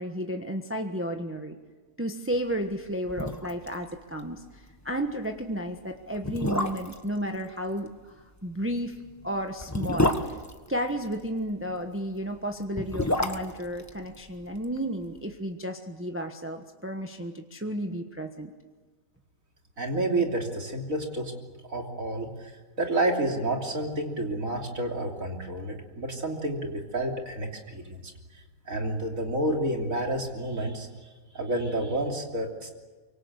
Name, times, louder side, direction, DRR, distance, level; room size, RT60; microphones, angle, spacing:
voice 1, 0.0-1.6 2.0-8.1 8.4-9.0 9.2-10.2 10.7-18.5, equal, 10° right, 4 dB, 1.2 m, -32 dB
sound 1, 2.7-2.8 3.1-3.8 4.0-4.1 4.5-4.7 5.4-5.5 6.1-7.1 8.6-11.3 12.5-14.8 15.0-15.1, left 1 dB, 10° left, 1.4 m, -29 dB
voice 2, 19.8-21.3 21.7-22.5 22.8-28.1 28.7-30.9 31.3-32.7, right 1 dB, 75° right, 1 dB, 3.6 m, -29 dB
25.0 x 24.0 x 8.1 m, 1.3 s
omnidirectional pair, 1.4 m